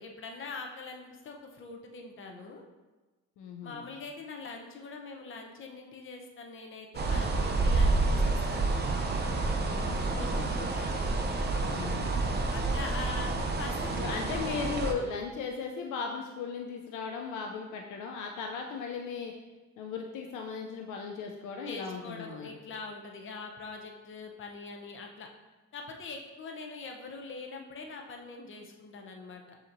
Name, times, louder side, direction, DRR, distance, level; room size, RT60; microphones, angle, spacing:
voice 1, 0.0-2.6 3.6-8.7 10.1-10.9 12.5-14.5 21.6-25.3 25.7-29.6, left 4 dB, 40° left, 2 dB, 0.7 m, -43 dB
voice 2, 3.4-3.8 9.6-10.2 11.7-12.2 13.9-19.3 19.8-22.5, left 5 dB, 80° left, 2 dB, 0.5 m, -37 dB
sound 1, 6.9-14.9, right 3 dB, 35° right, 0.5 m, -29 dB
6.7 x 2.9 x 2.6 m, 1.2 s
cardioid pair, 90°, 30 cm